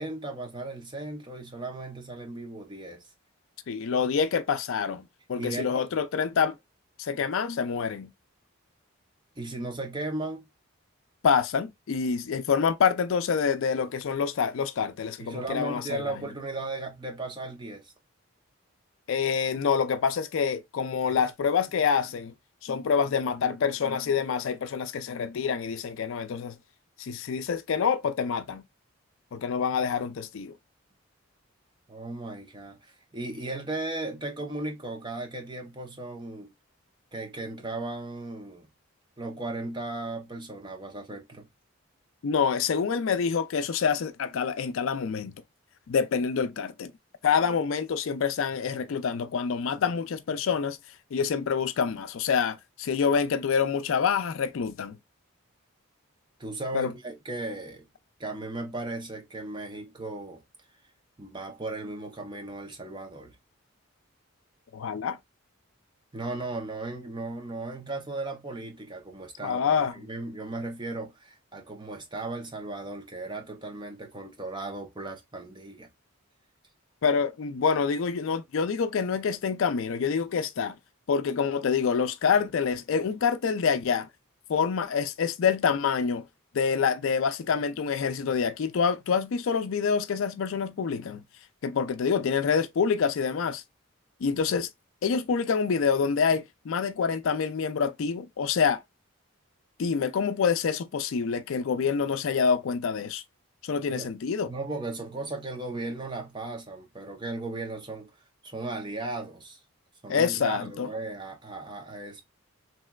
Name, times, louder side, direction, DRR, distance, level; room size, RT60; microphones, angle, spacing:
voice 1, 0.0-3.1 5.4-5.8 9.4-10.5 15.2-17.9 31.9-36.5 37.1-38.7 39.2-41.5 56.4-57.9 58.2-60.4 61.2-63.4 66.1-75.9 103.9-104.1 104.5-108.1 108.4-109.6 110.0-112.2, right 2 dB, 20° right, 0.6 m, -36 dB
voice 2, 3.7-6.5 7.0-8.1 11.2-16.2 19.1-22.3 22.6-26.6 27.0-28.6 29.3-30.6 42.2-45.3 45.9-46.9 47.2-50.8 51.1-55.0 56.7-56.9 64.7-65.2 69.4-69.9 77.0-80.8 81.1-84.1 84.5-86.2 86.5-91.2 91.6-93.6 94.2-94.7 95.0-98.8 99.8-103.2 103.6-104.5 110.1-110.9, left 6 dB, 65° left, 0.4 m, -26 dB
3.3 x 2.9 x 2.2 m
head